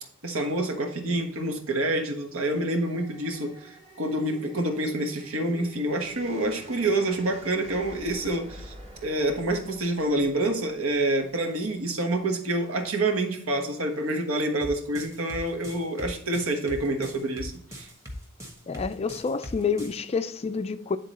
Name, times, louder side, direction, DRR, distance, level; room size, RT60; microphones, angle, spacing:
voice 1, 0.2-8.7 9.0-17.9, right 1 dB, 75° right, 1.3 m, -27 dB
sound 1, 2.6-11.7, right 2 dB, 30° right, 1.9 m, -48 dB
sound 2, 14.6-20.0, equal, 15° right, 1.3 m, -40 dB
voice 2, 18.7-21.0, left 5 dB, 30° left, 0.3 m, -28 dB
9.6 x 3.8 x 4.1 m
head